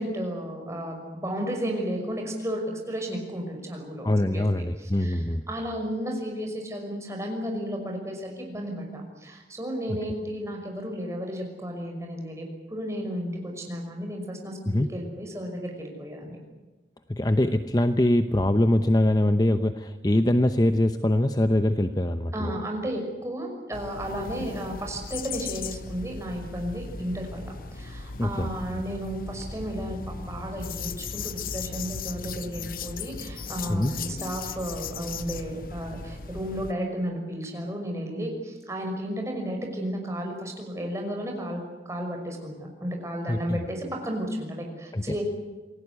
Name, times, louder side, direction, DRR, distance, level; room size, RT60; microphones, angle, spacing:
voice 1, 0.0-4.4 4.8-16.4 22.3-45.2, equal, 15° right, 2 dB, 5.8 m, -33 dB
voice 2, 4.0-5.4 14.7-14.9 17.1-22.5 28.2-28.8 33.7-33.9 43.3-43.6 44.9-45.0, left 1 dB, 20° left, 9 dB, 0.8 m, -23 dB
sound 1, 23.7-36.7, left 5 dB, 50° left, 0.9 m, -37 dB
28.0 x 19.5 x 8.3 m, 1.2 s
head